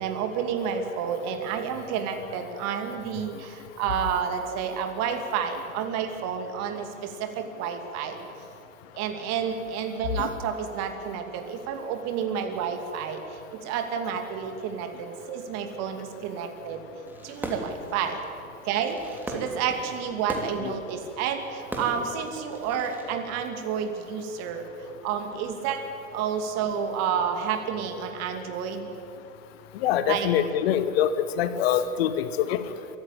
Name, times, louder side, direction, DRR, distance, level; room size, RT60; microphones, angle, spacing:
voice 1, 0.0-8.2 9.0-16.8 17.2-18.2 18.6-24.7 25.0-25.8 26.1-28.9 30.1-30.3, right 7 dB, 40° right, 6 dB, 2.6 m, -30 dB
Fireworks, 17.1-23.1, equal, 5° right, 3.0 m, -38 dB
voice 2, 29.7-32.6, left 9 dB, 45° left, 13 dB, 1.1 m, -25 dB
24.0 x 14.0 x 9.0 m, 2.8 s
figure-of-eight pair, 95°, 42 cm